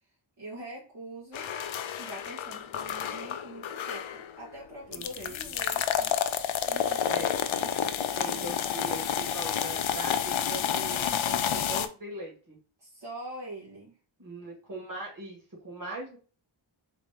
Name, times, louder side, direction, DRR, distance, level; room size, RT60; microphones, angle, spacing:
voice 1, 0.4-1.5 2.0-6.2 6.6-8.5 12.8-14.0, right 1 dB, 60° right, -7 dB, 1.6 m, -44 dB
sound 1, 1.3-4.4 4.9-11.9, left 9 dB, 70° left, 0.5 m, -30 dB
voice 2, 4.9-5.5 7.0-7.4 8.2-12.6 14.2-16.2, right 2 dB, 40° right, -1 dB, 2.2 m, -40 dB
3.9 x 2.9 x 3.5 m, 0.36 s
wide cardioid pair, 65°, 49 cm